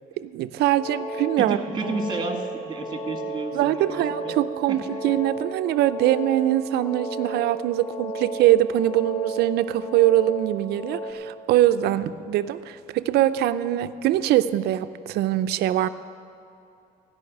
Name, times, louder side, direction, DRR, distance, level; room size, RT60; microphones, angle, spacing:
voice 1, 0.2-1.6 1.8-1.9 3.5-15.9, right 13 dB, 75° right, 12 dB, 0.5 m, -22 dB
sound 1, 0.6-11.1, right 2 dB, 30° left, 1.7 m, -34 dB
voice 2, 1.4-4.4 4.7-5.0, right 3 dB, 25° right, 4 dB, 1.7 m, -31 dB
16.5 x 5.6 x 9.3 m, 2.6 s
cardioid pair, 110°, 17 cm